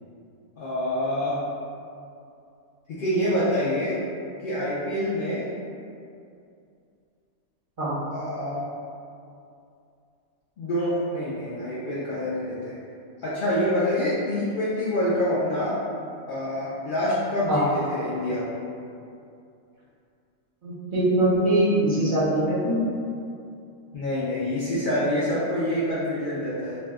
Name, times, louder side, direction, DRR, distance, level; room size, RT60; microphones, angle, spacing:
voice 1, 0.6-1.4 3.0-3.9 4.4-5.4 8.1-8.6 10.6-12.8 13.2-15.8 16.3-18.4 23.9-26.8, left 1 dB, 75° left, -9 dB, 0.4 m, -26 dB
voice 2, 20.6-22.8, right 1 dB, 50° right, -10 dB, 0.6 m, -22 dB
2.5 x 2.2 x 3.4 m, 2.5 s
omnidirectional pair, 1.5 m